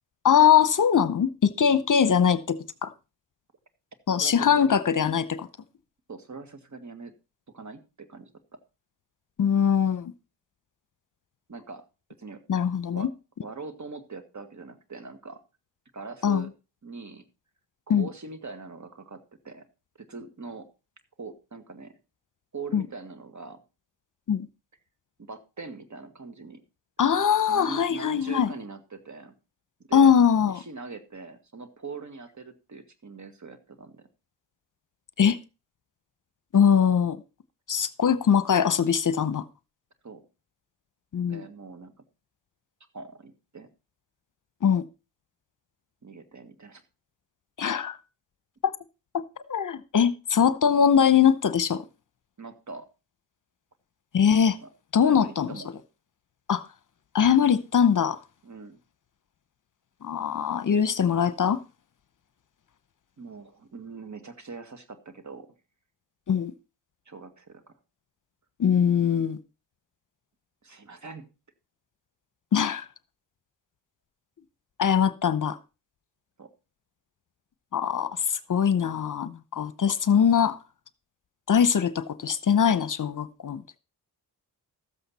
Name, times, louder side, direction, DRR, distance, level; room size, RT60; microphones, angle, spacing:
voice 1, 0.2-2.9 4.1-5.5 9.4-10.1 12.5-13.1 16.2-16.4 17.9-18.1 22.7-22.8 24.3-24.5 27.0-28.5 29.9-30.6 35.2-35.4 36.5-37.2 37.7-39.4 41.1-41.4 44.6-44.8 47.6-48.0 48.6-48.7 49.1-49.2 49.5-51.8 54.1-54.6 54.9-55.5 56.5-56.6 57.1-58.2 60.0-61.6 66.3-66.5 68.6-69.4 72.5-72.9 74.8-75.6 77.7-80.6 81.5-83.8, left 7 dB, 45° left, 0.9 m, -22 dB
voice 2, 4.1-4.8 6.1-7.1 7.5-8.6 11.5-11.8 12.2-12.4 12.9-13.1 13.4-15.4 15.9-16.5 16.8-17.3 17.9-19.6 20.0-20.7 21.2-21.9 22.5-23.6 25.3-26.6 27.5-29.4 29.9-30.1 30.5-34.1 36.6-36.7 40.0-40.2 41.3-41.9 42.9-43.7 46.0-46.8 52.4-52.8 54.6-54.7 55.0-55.8 58.4-58.8 63.2-65.5 67.1-67.6 70.6-71.3 76.4-76.5, right 4 dB, 40° right, 1.9 m, -42 dB
13.0 x 7.9 x 4.2 m
cardioid pair, 50°, 42 cm